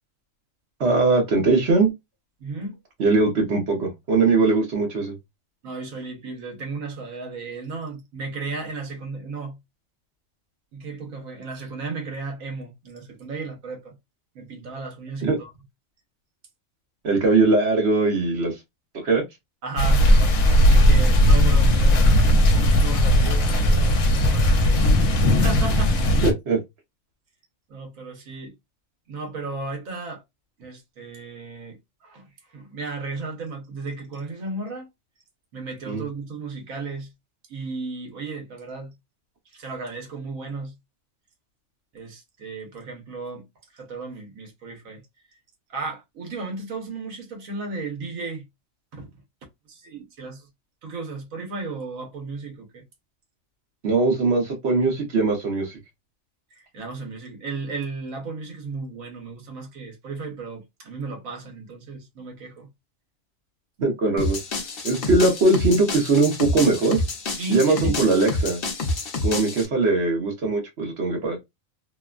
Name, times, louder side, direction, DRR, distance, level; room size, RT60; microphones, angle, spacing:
voice 1, 0.8-1.9 3.0-5.1 15.2-15.4 17.0-18.5 19.0-19.2 26.2-26.6 35.9-36.0 53.8-55.8 63.8-64.4 64.8-67.0 67.5-68.6 69.2-71.4, right 3 dB, 55° right, 1.1 m, -20 dB
voice 2, 2.4-2.8 5.6-9.6 10.7-14.0 14.3-15.5 19.6-20.2 20.7-26.0 27.7-28.5 29.1-30.2 30.6-34.9 35.5-37.1 37.5-38.9 39.5-40.7 41.9-43.5 43.7-45.0 45.7-48.5 48.9-49.2 49.7-50.5 50.8-52.8 56.5-62.7 67.3-67.9, right 3 dB, 80° right, 1.3 m, -34 dB
sound 1, 19.8-26.3, equal, 75° left, 1.1 m, -17 dB
sound 2, 64.2-69.7, left 2 dB, 50° left, 0.8 m, -28 dB
2.9 x 2.2 x 2.3 m
omnidirectional pair, 1.4 m